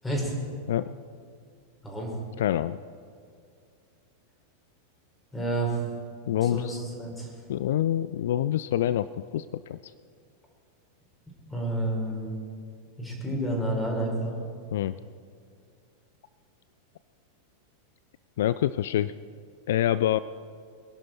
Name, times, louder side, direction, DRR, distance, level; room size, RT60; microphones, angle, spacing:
voice 1, 1.8-2.1 5.3-5.8 6.4-7.3 11.5-12.3 13.0-14.3, right 1 dB, 10° left, -1 dB, 5.0 m, -30 dB
voice 2, 2.4-2.8 6.3-6.8 7.5-9.1 9.3-9.9 14.7-14.9 18.4-19.1 19.7-20.2, left 12 dB, 65° left, 16 dB, 0.3 m, -26 dB
23.5 x 11.0 x 4.5 m, 2.2 s
figure-of-eight pair, 90°, 0 cm